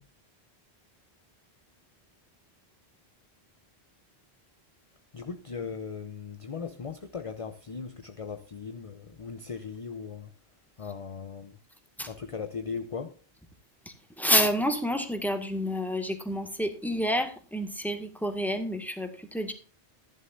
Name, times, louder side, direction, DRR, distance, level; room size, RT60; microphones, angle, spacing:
voice 1, 5.1-10.3 10.8-11.6 12.1-13.1, left 5 dB, 35° left, 0.8 m, -38 dB
voice 2, 14.2-19.5, equal, ahead, 1.9 m, -28 dB
14.5 x 11.0 x 2.6 m
omnidirectional pair, 1.1 m